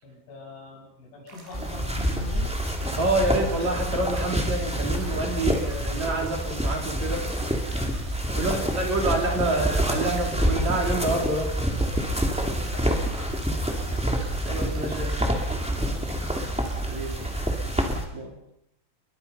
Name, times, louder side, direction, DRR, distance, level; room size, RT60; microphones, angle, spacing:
voice 1, 0.0-2.5 8.4-9.0 12.4-14.1 16.2-16.8 17.1-17.3, left 2 dB, 70° left, 0 dB, 9.6 m, -44 dB
sound 1, 1.3-17.8, right 3 dB, 70° right, 8.0 m, -48 dB
sound 2, 1.5-18.0, equal, 5° right, 1.2 m, -27 dB
voice 2, 3.0-7.3 8.3-11.5 14.5-15.4 16.9-17.2 18.1-18.3, right 2 dB, 35° right, 1 dB, 4.9 m, -27 dB
29.5 x 23.0 x 5.7 m, 0.77 s
omnidirectional pair, 5.7 m